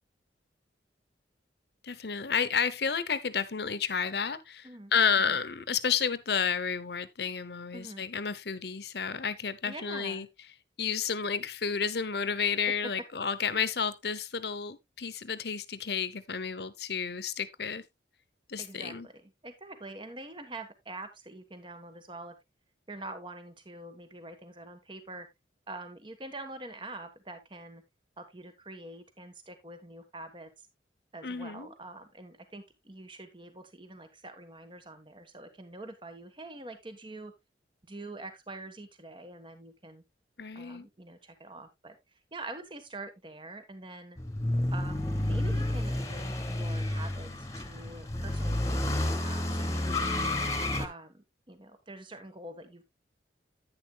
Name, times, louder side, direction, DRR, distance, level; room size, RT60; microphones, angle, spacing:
voice 1, 1.8-10.3 10.8-17.8 18.5-19.1 31.2-31.7 40.4-40.9, left 6 dB, 60° left, 0.9 m, -31 dB
voice 2, 7.7-8.0 9.7-10.3 12.8-12.9 18.6-22.4 22.9-25.3 25.7-27.8 28.2-30.7 31.1-37.3 37.9-40.0 40.5-42.0 42.3-44.2 44.7-50.1 50.8-52.8, right 2 dB, 25° right, 1.3 m, -45 dB
sound 1, 44.2-50.9, left 1 dB, 15° left, 1.3 m, -30 dB
10.5 x 9.5 x 2.3 m
head